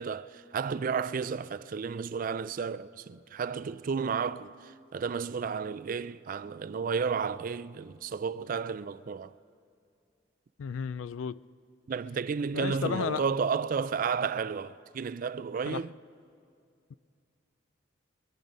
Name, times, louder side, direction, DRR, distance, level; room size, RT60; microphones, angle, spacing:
voice 1, 0.0-4.5 4.9-9.3 11.9-15.9, right 6 dB, 45° right, 0.3 m, -32 dB
voice 2, 10.6-11.4 12.5-13.2 15.6-15.8 16.9-17.0, left 7 dB, 80° left, 0.4 m, -33 dB
24.5 x 10.5 x 5.4 m
head